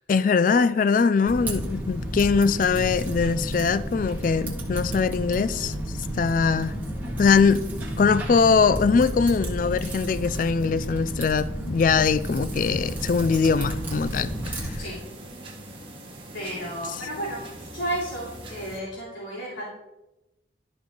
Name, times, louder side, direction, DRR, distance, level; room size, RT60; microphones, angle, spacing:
voice 1, 0.1-5.7 6.1-6.7 7.2-7.6 8.0-14.7, left 5 dB, 45° left, 0.3 m, -22 dB
Typing, 1.3-14.8, right 1 dB, 10° right, 1.7 m, -31 dB
sound 1, 12.6-18.8, right 1 dB, 30° right, 1.7 m, -42 dB
voice 2, 16.3-19.6, right 1 dB, 85° left, 3.6 m, -33 dB
13.0 x 5.4 x 4.5 m
head